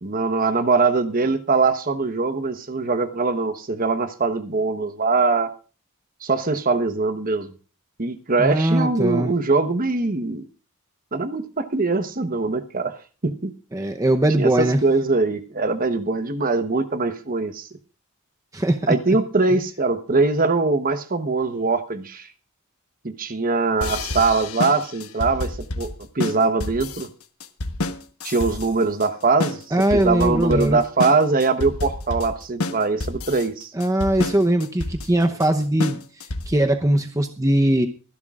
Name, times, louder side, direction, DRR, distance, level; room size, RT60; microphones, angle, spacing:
voice 1, 0.0-5.5 6.2-7.5 8.0-10.4 11.1-13.5 14.4-17.7 18.9-22.3 23.0-27.1 28.2-29.6 29.9-33.7, right 3 dB, 40° right, 9 dB, 1.1 m, -22 dB
voice 2, 8.4-9.3 13.7-14.8 18.5-19.2 29.7-30.8 33.7-36.0 36.5-37.9, right 1 dB, 15° right, 5 dB, 0.8 m, -20 dB
sound 1, 23.8-36.7, left 2 dB, 80° left, 1.2 m, -29 dB
24.0 x 11.5 x 2.5 m, 0.36 s
head